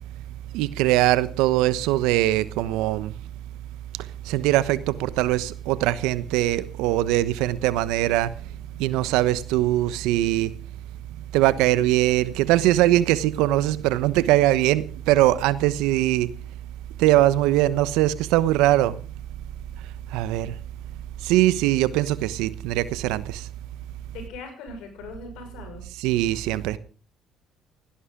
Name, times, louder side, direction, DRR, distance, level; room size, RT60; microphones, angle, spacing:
voice 1, 0.5-3.1 4.3-8.3 8.8-10.5 11.3-16.3 17.0-19.0 20.1-20.5 21.2-23.4 26.0-26.8, right 15 dB, 75° right, 1.0 m, -21 dB
voice 2, 24.1-25.9, left 4 dB, 75° left, 5.8 m, -40 dB
17.0 x 16.5 x 3.8 m
hypercardioid pair, 60°, 0 cm